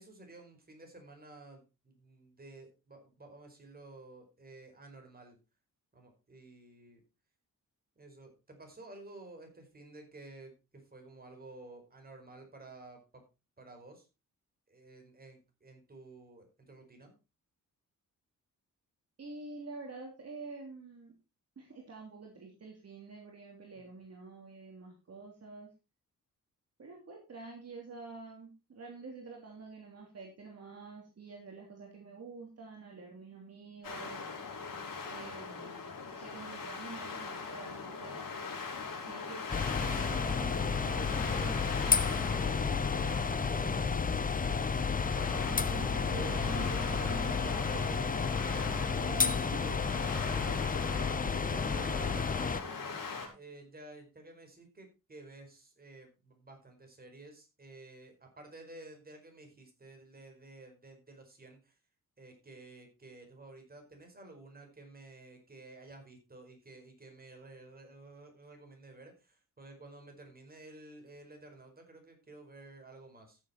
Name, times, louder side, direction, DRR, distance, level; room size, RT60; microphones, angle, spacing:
voice 1, 0.0-5.4 5.9-7.0 7.9-13.2 13.6-14.1 14.7-17.1 23.8-24.0 35.0-35.2 50.0-50.5 50.9-61.8 62.2-73.4, right 2 dB, 25° right, 4 dB, 4.9 m, -53 dB
voice 2, 19.2-21.1 21.6-25.7 26.8-34.2 35.1-38.6 39.1-39.4 39.7-42.6 42.9-44.1 45.5-49.8 50.4-50.6, right 4 dB, 45° right, 0 dB, 3.1 m, -47 dB
sound 1, 33.8-53.3, left 4 dB, 75° left, 4.9 m, -41 dB
sound 2, 39.5-52.6, left 5 dB, 25° left, 0.9 m, -31 dB
14.0 x 7.6 x 4.3 m, 0.29 s
wide cardioid pair, 120°, 34 cm